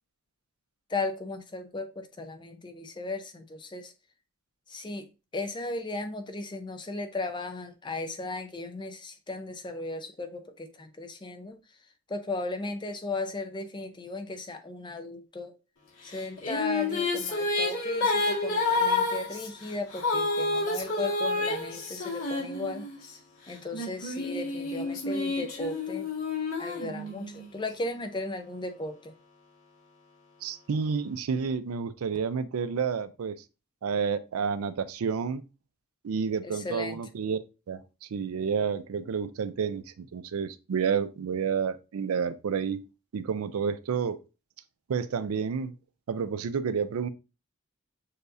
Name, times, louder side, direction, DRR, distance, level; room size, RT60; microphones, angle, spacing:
voice 1, 0.9-3.9 4.7-11.6 12.1-15.6 16.0-22.9 23.5-26.1 26.6-29.1 36.4-37.0, left 2 dB, 20° left, 0.5 m, -36 dB
Female singing, 16.1-23.1 23.7-27.5, left 3 dB, 75° left, 1.9 m, -29 dB
voice 2, 30.4-33.4 33.8-35.4 36.0-42.9 43.1-44.2 44.9-45.7 46.1-47.1, right 6 dB, 85° right, 0.4 m, -30 dB
6.6 x 2.6 x 2.5 m
head